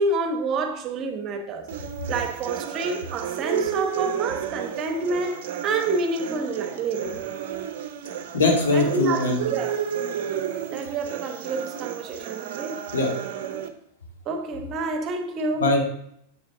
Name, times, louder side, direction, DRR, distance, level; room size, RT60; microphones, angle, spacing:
voice 1, 0.0-1.7 2.1-7.2 8.7-9.9 10.7-12.8 14.2-15.7, right 3 dB, 30° right, 1.3 m, -28 dB
sound 1, 1.7-13.7, right 9 dB, 50° right, 0.9 m, -32 dB
voice 2, 8.3-9.4 12.9-13.1 15.6-15.8, left 2 dB, 65° left, 2.4 m, -21 dB
9.5 x 7.6 x 3.7 m
figure-of-eight pair, 90°, 0 cm